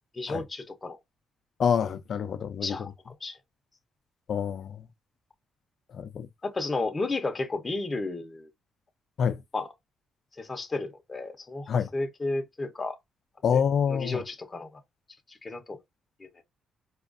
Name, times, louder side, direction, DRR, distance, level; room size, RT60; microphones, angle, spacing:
voice 1, 0.1-1.0 2.6-3.4 6.4-8.5 9.5-9.7 10.4-13.0 13.5-13.6 13.9-14.7 15.3-15.8 16.2-16.4, left 3 dB, 25° left, 0.7 m, -33 dB
voice 2, 1.6-2.8 4.3-4.8 5.9-6.3 9.2-9.4 11.7-11.9 13.4-14.2, left 7 dB, 60° left, 0.4 m, -26 dB
4.3 x 2.4 x 2.5 m
cardioid pair, 90°, 0 cm